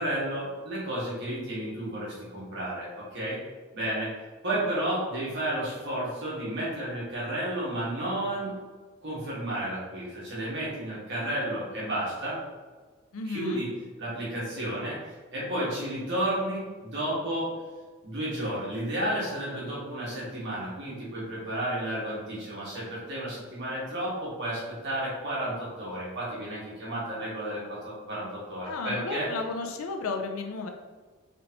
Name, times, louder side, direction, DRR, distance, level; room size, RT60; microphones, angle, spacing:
voice 1, 0.0-3.4 3.7-4.1 4.4-8.5 9.0-12.4 13.2-13.7 14.0-17.5 18.0-29.3, right 1 dB, 60° right, -7 dB, 1.4 m, -32 dB
voice 2, 13.1-13.6 28.6-30.7, left 3 dB, 80° left, 5 dB, 0.4 m, -33 dB
3.9 x 3.3 x 2.9 m, 1.4 s
head